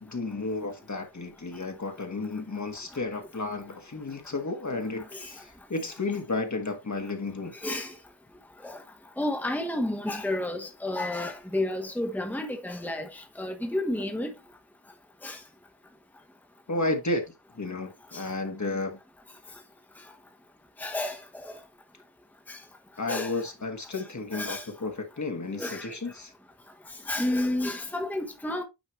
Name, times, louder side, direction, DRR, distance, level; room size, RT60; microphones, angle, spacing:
voice 1, 0.0-7.5 16.7-19.0 23.0-26.3, left 2 dB, 40° left, 1.6 m, -32 dB
voice 2, 7.5-7.9 8.6-8.8 9.2-14.3 15.2-15.4 18.1-18.2 20.8-21.6 22.5-22.6 23.1-23.4 23.9-24.0 24.3-24.7 25.6-25.9 27.1-28.6, left 1 dB, 5° left, 1.2 m, -31 dB
9.4 x 4.4 x 3.2 m
wide cardioid pair, 105°, 45 cm